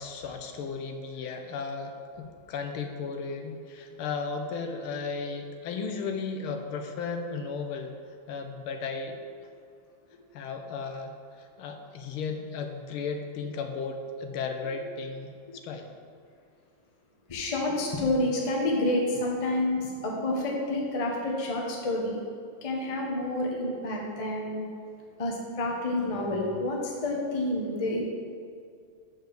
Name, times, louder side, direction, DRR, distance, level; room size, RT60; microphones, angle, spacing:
voice 1, 0.0-7.9 8.3-9.2 10.3-15.9, left 4 dB, 80° left, 5 dB, 1.5 m, -35 dB
voice 2, 17.3-22.2 22.6-24.6 25.2-28.0, left 1 dB, 30° left, -2 dB, 0.6 m, -29 dB
6.9 x 4.7 x 6.4 m, 2.3 s
omnidirectional pair, 2.4 m